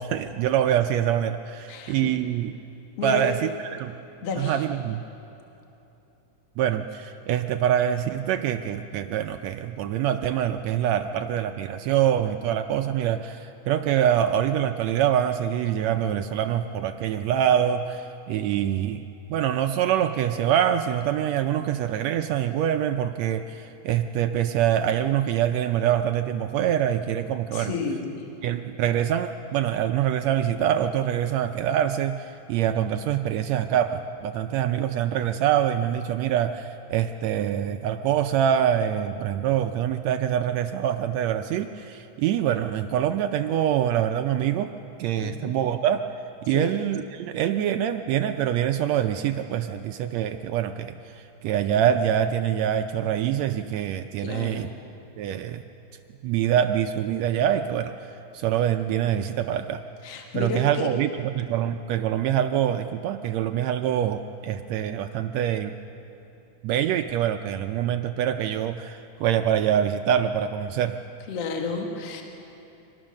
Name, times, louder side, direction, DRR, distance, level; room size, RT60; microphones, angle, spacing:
voice 1, 0.0-2.5 3.0-3.9 4.4-5.1 6.6-27.7 28.4-44.7 45.0-46.0 46.4-54.7 55.2-55.6 56.2-59.8 60.3-65.8 66.6-71.0, right 10 dB, 75° right, 8 dB, 1.7 m, -25 dB
voice 2, 1.7-2.1 3.0-3.2 4.2-4.6 27.5-28.3 45.2-45.6 46.5-46.8 54.2-54.6 60.0-60.9 71.3-72.2, left 4 dB, 60° left, 2 dB, 2.5 m, -31 dB
24.5 x 19.0 x 6.4 m, 2.9 s
omnidirectional pair, 3.5 m